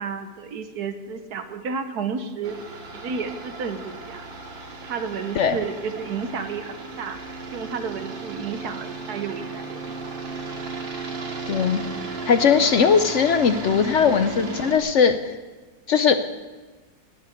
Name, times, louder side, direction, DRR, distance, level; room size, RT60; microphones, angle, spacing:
voice 1, 0.0-2.6 2.9-4.2 4.8-7.2 7.5-9.8, right 5 dB, 60° right, 8 dB, 1.4 m, -31 dB
sound 1, 2.4-14.8, right 3 dB, 90° right, 2.8 m, -35 dB
voice 2, 11.5-11.8 12.3-15.3 15.9-16.2, left 6 dB, 70° left, 10 dB, 0.7 m, -19 dB
18.5 x 6.8 x 9.1 m, 1.3 s
omnidirectional pair, 2.0 m